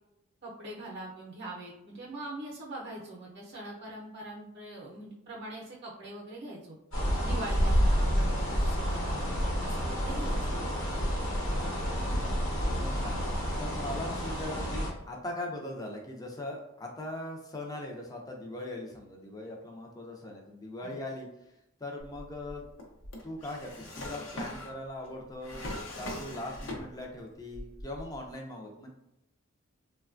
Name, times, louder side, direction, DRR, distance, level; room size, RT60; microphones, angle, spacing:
voice 1, 0.4-6.8 7.2-9.2 9.6-10.8 20.8-21.0 26.0-26.2, right 2 dB, 50° right, -3 dB, 0.6 m, -42 dB
sound 1, 6.9-14.9, equal, 85° left, 1.0 m, -29 dB
voice 2, 12.0-12.3 12.7-21.3 21.8-22.6 23.2-28.9, left 1 dB, 20° left, 0 dB, 0.5 m, -40 dB
Drawer open or close, 22.0-27.2 27.5-28.3, left 1 dB, 65° left, 0.6 m, -41 dB
3.1 x 2.2 x 2.4 m, 0.86 s
head